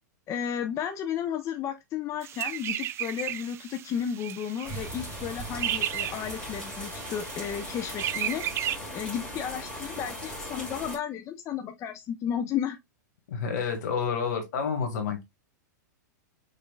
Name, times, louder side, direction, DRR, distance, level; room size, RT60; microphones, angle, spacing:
voice 1, 0.3-8.4 8.9-12.8, left 8 dB, 30° left, 0.6 m, -33 dB
sound 1, 2.2-8.8, right 12 dB, 25° right, 0.3 m, -34 dB
sound 2, 4.6-11.0, equal, 10° left, 2.5 m, -38 dB
voice 2, 13.3-15.2, left 6 dB, 70° left, 1.9 m, -29 dB
5.3 x 3.8 x 2.3 m
hypercardioid pair, 120°, 10 cm